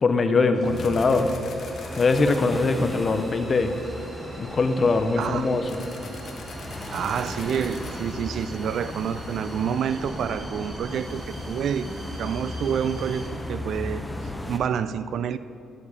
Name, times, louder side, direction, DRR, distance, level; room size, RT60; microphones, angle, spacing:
voice 1, 0.0-1.5 2.0-3.7 4.4-5.8, left 3 dB, 40° left, 8 dB, 0.7 m, -22 dB
sound 1, 0.5-13.3, right 2 dB, 45° right, 1.5 m, -46 dB
sound 2, 0.6-14.6, left 1 dB, 5° left, 0.9 m, -36 dB
sound 3, 0.8-2.4 5.7-7.9, left 5 dB, 60° left, 1.1 m, -45 dB
voice 2, 5.2-5.7 6.9-11.9 12.2-15.4, right 8 dB, 70° right, 14 dB, 0.3 m, -28 dB
11.0 x 7.0 x 4.9 m, 2.6 s
cardioid pair, 90°, 0 cm